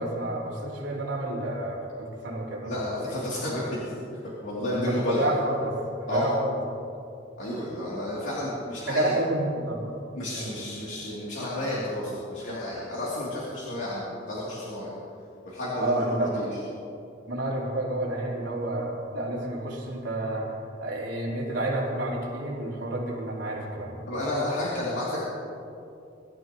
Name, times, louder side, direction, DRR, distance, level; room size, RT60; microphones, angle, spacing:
voice 1, 0.0-2.7 3.1-3.2 4.7-5.7 6.0-6.6 8.9-9.8 10.3-10.5 15.8-16.4 17.3-20.5 20.8-24.0, right 1 dB, 70° right, -5 dB, 4.1 m, -29 dB
voice 2, 2.6-3.9 4.4-5.3 6.1-6.3 7.4-9.1 10.1-14.9 15.4-16.5 24.1-25.2, left 1 dB, 75° left, -8 dB, 3.0 m, -31 dB
23.5 x 13.5 x 3.1 m, 2.6 s
head